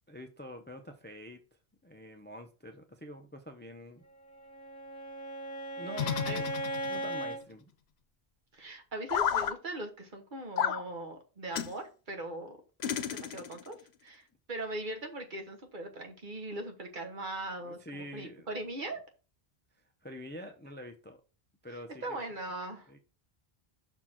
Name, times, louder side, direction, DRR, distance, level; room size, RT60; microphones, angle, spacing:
voice 1, 0.1-4.0 5.8-6.4 6.9-7.6 17.6-18.5 19.8-21.2 21.6-22.2 22.9-23.0, equal, 15° left, 6 dB, 0.5 m, -46 dB
Bowed string instrument, 4.2-7.4, right 2 dB, 15° right, 1.8 m, -37 dB
sound 1, 5.9-7.2 9.1-9.5 10.6-10.8 11.5-11.7 12.8-13.7, left 8 dB, 90° left, 0.9 m, -32 dB
voice 2, 5.9-6.4 8.5-12.6 13.1-13.8 14.0-19.0 22.0-22.9, right 2 dB, 50° right, 4 dB, 1.4 m, -40 dB
5.7 x 4.4 x 4.4 m, 0.34 s
omnidirectional pair, 1.1 m